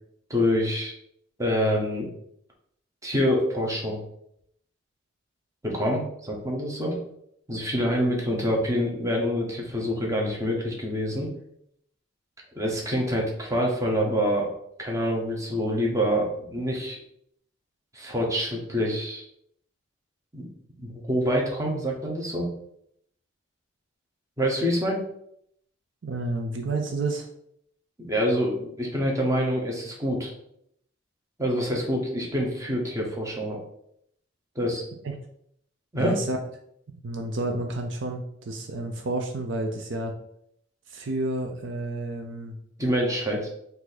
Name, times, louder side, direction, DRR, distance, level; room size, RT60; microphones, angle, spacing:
voice 1, 0.3-0.9 1.4-2.1 3.0-4.0 5.6-6.9 7.5-11.3 12.5-14.5 14.8-17.0 17.9-19.2 20.3-20.4 20.8-22.5 24.4-25.0 28.0-30.3 31.4-33.6 34.5-34.8 35.9-36.2 42.8-43.5, equal, 15° right, -1 dB, 1.0 m, -26 dB
voice 2, 26.0-27.3 35.0-35.1 36.0-36.4 36.9-40.2 40.9-42.6, right 2 dB, 65° right, 4 dB, 0.5 m, -30 dB
4.8 x 2.7 x 4.0 m, 0.72 s
head